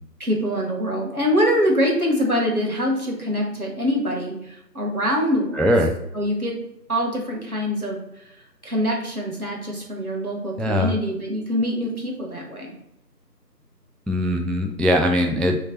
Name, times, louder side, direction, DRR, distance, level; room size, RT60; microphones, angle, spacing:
voice 1, 0.2-5.6 6.1-6.6 6.9-8.3 8.6-12.7, equal, 60° right, 0 dB, 1.3 m, -24 dB
voice 2, 5.5-5.9 10.6-10.9 14.1-15.6, equal, ahead, 3 dB, 0.3 m, -20 dB
3.2 x 2.9 x 4.0 m, 0.82 s
figure-of-eight pair, 180°, 49 cm